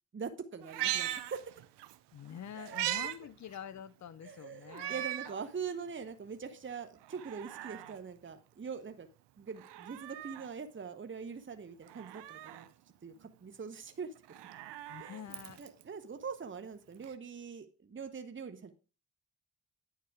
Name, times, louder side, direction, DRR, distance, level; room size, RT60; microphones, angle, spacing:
voice 1, 0.1-1.4 2.5-3.0 4.2-9.1 9.4-12.7 13.0-14.2 15.0-15.2 15.6-18.7, right 6 dB, 25° right, 8 dB, 1.0 m, -43 dB
Meow, 0.6-2.0 2.3-3.2 3.5-3.6 4.7-5.4 5.9-6.0 7.0-8.0 9.5-10.5 11.9-12.7 14.2-15.8 17.0-17.1, right 13 dB, 70° right, 0.7 m, -39 dB
voice 2, 2.1-5.1 14.9-15.6, left 9 dB, 40° left, 18 dB, 0.7 m, -46 dB
9.2 x 4.6 x 4.8 m, 0.36 s
hypercardioid pair, 40°, 43 cm